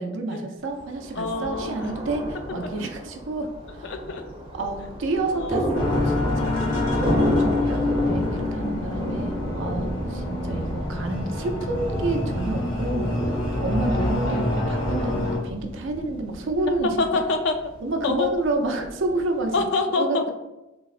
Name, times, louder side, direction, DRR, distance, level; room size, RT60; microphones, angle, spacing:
voice 1, 0.0-3.9 4.5-17.2 17.8-19.5 19.9-20.3, right 2 dB, 70° right, 4 dB, 0.4 m, -29 dB
Thunder, 0.7-19.7, right 1 dB, 30° right, 0.6 m, -32 dB
voice 2, 1.2-1.7 3.8-4.2 5.4-5.7 7.3-7.6 17.0-17.6 18.0-18.3 19.5-20.2, left 3 dB, 65° left, 6 dB, 0.3 m, -25 dB
sound 1, 5.7-15.4, left 2 dB, 80° left, 0.8 m, -26 dB
3.5 x 2.0 x 2.3 m, 1.0 s
head